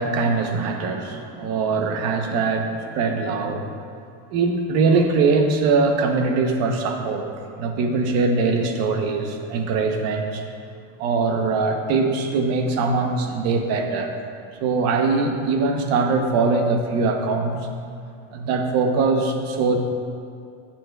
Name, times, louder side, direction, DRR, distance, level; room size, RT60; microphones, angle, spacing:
voice 1, 0.0-3.7 4.3-7.3 7.6-10.4 11.0-14.2 14.6-17.7 18.3-19.8, right 4 dB, 35° right, 4 dB, 0.7 m, -22 dB
13.5 x 7.2 x 2.2 m, 2.4 s
cardioid pair, 170°, 44 cm